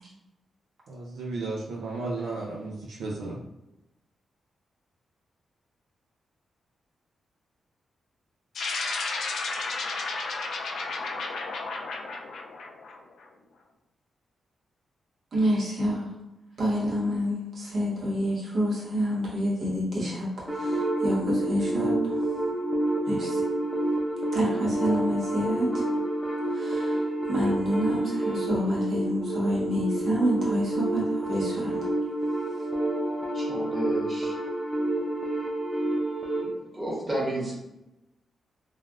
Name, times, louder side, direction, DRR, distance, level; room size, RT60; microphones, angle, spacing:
voice 1, 0.9-3.4, right 3 dB, 90° right, -4 dB, 0.4 m, -34 dB
sound 1, 8.5-13.2, left 3 dB, 80° left, 0.4 m, -33 dB
voice 2, 15.3-16.1 16.6-22.3 23.0-23.4 24.3-25.8 26.5-27.0 27.3-31.9, equal, 70° right, -6 dB, 1.1 m, -28 dB
sound 2, 20.5-36.5, right 1 dB, 5° left, 0.6 m, -29 dB
voice 3, 33.3-34.3 36.4-37.5, right 1 dB, 30° right, -6 dB, 1.4 m, -32 dB
3.3 x 2.3 x 2.4 m, 0.94 s
cardioid pair, 85°, 0 cm